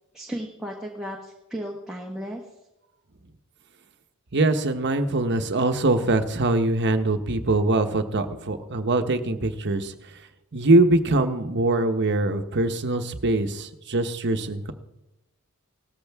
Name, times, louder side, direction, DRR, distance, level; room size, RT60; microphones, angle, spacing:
voice 1, 0.1-2.4, equal, ahead, -2 dB, 1.3 m, -34 dB
voice 2, 4.3-9.9 10.5-14.7, right 2 dB, 55° right, 8 dB, 1.0 m, -23 dB
18.0 x 13.5 x 3.5 m, 0.95 s
head